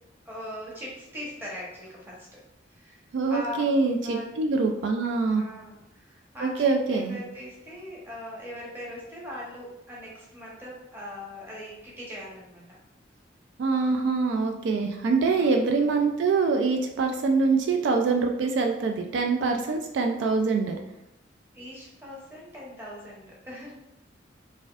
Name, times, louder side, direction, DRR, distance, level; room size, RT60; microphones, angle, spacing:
voice 1, 0.2-2.4 2.7-3.0 3.3-3.7 4.0-4.4 5.3-12.8 15.2-15.5 21.5-23.8, left 1 dB, 10° right, -5 dB, 0.9 m, -40 dB
voice 2, 3.1-5.4 6.4-7.2 13.6-20.8, right 4 dB, 70° right, 4 dB, 0.3 m, -24 dB
4.1 x 2.5 x 2.4 m, 0.89 s
head